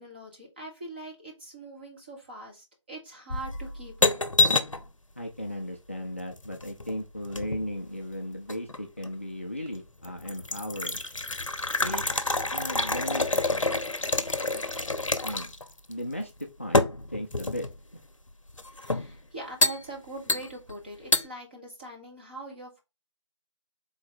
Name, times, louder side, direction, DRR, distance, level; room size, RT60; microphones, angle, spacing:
voice 1, 0.0-4.1 18.7-22.8, right 2 dB, 20° right, -1 dB, 1.1 m, -42 dB
sound 1, 3.3-4.9 6.3-7.7 8.5-9.1 9.7-9.8 10.0-15.6 15.9-16.0 16.7-17.8 18.6-19.1 19.6-19.8 20.3-20.7 21.1-21.3, left 2 dB, 85° left, 0.7 m, -27 dB
voice 2, 5.2-11.0 11.8-12.0 12.5-13.3 15.2-15.5 15.9-16.3 16.6-16.8 17.1-17.7 17.9-18.0, left 1 dB, 25° left, 2 dB, 0.4 m, -36 dB
3.9 x 3.1 x 4.3 m, 0.25 s
figure-of-eight pair, 165°, 16 cm